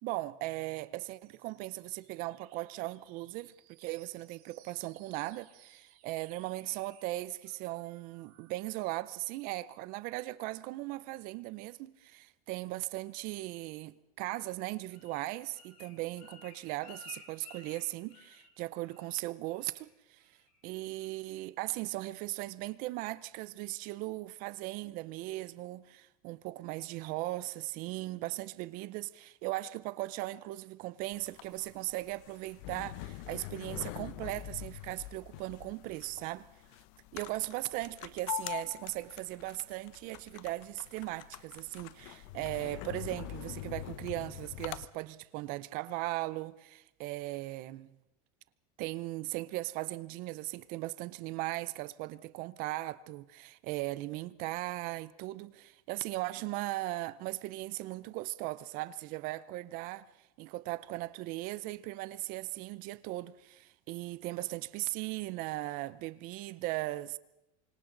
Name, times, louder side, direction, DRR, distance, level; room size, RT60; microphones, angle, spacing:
voice 1, 0.0-20.4 20.6-36.5 37.1-48.0 48.8-67.2, right 18 dB, 50° right, 0.7 m, -38 dB
sound 1, 1.0-9.0, right 12 dB, 80° right, 4.6 m, -63 dB
Bird, 14.5-18.6 18.9-19.2 19.5-19.9 20.2-20.6 21.0-21.1, left 5 dB, 85° left, 5.8 m, -54 dB
sound 2, 31.1-44.9, left 14 dB, 60° left, 0.9 m, -44 dB
28.5 x 25.5 x 3.9 m
supercardioid pair, 155°, 19 cm